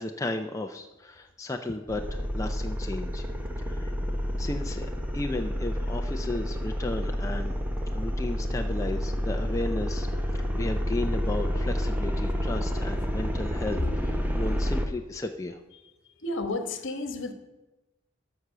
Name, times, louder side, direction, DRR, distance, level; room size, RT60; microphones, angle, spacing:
voice 1, 0.0-3.2 3.6-3.9 4.4-7.6 7.9-10.1 10.6-15.6, left 2 dB, 15° left, 4 dB, 0.5 m, -34 dB
sound 1, 1.9-14.9, equal, 10° right, 0.9 m, -29 dB
voice 2, 16.2-17.3, left 2 dB, 60° left, 8 dB, 1.3 m, -31 dB
13.0 x 6.1 x 6.8 m, 1.0 s
head